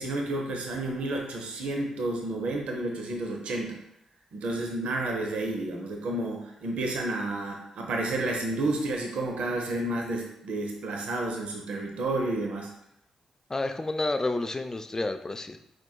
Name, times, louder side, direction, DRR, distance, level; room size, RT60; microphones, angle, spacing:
voice 1, 0.0-3.8 4.3-12.7, right 2 dB, 70° right, 1 dB, 0.7 m, -31 dB
voice 2, 13.5-15.6, left 2 dB, 25° left, 8 dB, 0.4 m, -30 dB
4.5 x 4.4 x 2.3 m, 0.79 s
hypercardioid pair, 40°, 2 cm